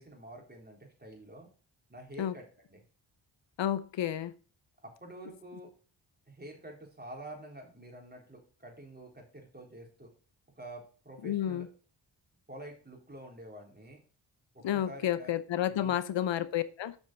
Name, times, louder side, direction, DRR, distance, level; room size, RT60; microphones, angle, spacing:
voice 1, 0.0-1.5 1.9-2.8 4.8-5.7 6.3-10.1 10.6-11.7 12.5-14.0 14.5-15.3 15.6-16.0, right 1 dB, 20° right, 4.1 m, -48 dB
voice 2, 3.6-4.3 11.2-11.7 14.6-17.0, left 11 dB, 70° left, 0.8 m, -31 dB
7.2 x 6.1 x 4.5 m
cardioid pair, 55°, 46 cm